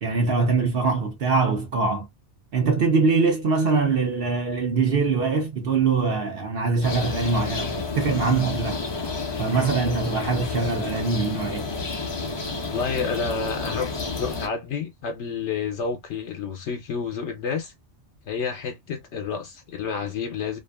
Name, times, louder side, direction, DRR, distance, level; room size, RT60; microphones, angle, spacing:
voice 1, 0.0-2.1 2.5-8.8 9.4-11.7, right 4 dB, 55° right, 0.9 m, -23 dB
sound 1, 6.8-14.5, left 4 dB, 45° left, 0.3 m, -30 dB
voice 2, 12.7-13.9 14.2-17.7 18.3-20.6, left 5 dB, 75° left, 0.9 m, -29 dB
2.5 x 2.4 x 2.2 m
omnidirectional pair, 1.2 m